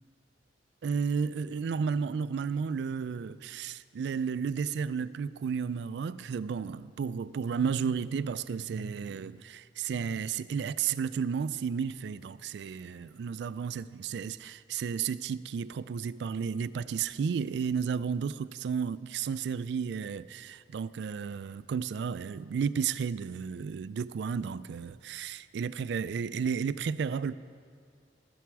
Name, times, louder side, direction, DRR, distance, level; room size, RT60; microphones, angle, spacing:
voice 1, 0.8-27.3, right 6 dB, 70° right, 0.3 m, -33 dB
14.0 x 9.2 x 4.7 m
head